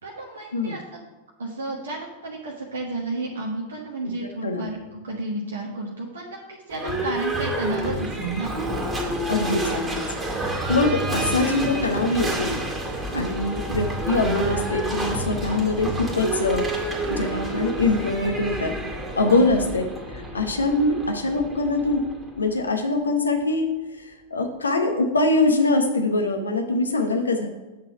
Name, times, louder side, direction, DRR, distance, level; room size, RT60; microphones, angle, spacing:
voice 1, 0.0-1.0 1.4-8.5 13.1-13.4 19.2-19.4, right 2 dB, 65° right, -1 dB, 1.2 m, -32 dB
voice 2, 4.0-4.7 6.8-7.0 7.9-8.1 9.3-10.1 10.4-12.6 13.1-18.7 19.2-19.9 20.1-22.0 22.4-27.5, left 2 dB, 75° left, 4 dB, 0.9 m, -23 dB
Livestock farm animals working animals / Bell, 6.7-22.6, right 1 dB, 10° right, 2.2 m, -29 dB
8.5 x 4.1 x 5.8 m, 1.1 s
figure-of-eight pair, 90°, 0 cm